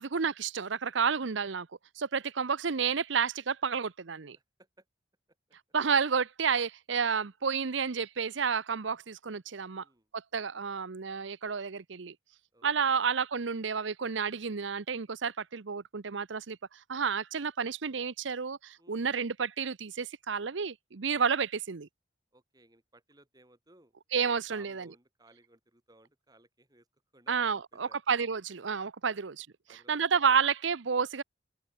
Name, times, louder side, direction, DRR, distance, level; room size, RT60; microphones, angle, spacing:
voice 1, 0.0-1.7 2.0-4.4 5.7-9.8 10.1-12.1 12.6-21.9 24.1-24.9 27.3-29.5 29.9-31.2, right 6 dB, 70° right, 0.7 m, -30 dB
voice 2, 4.3-4.9 9.7-10.1 12.5-13.0 18.8-19.1 22.3-23.9 24.2-26.9 27.1-28.0 29.1-29.2 29.7-30.2, right 1 dB, 20° right, 6.1 m, -62 dB
head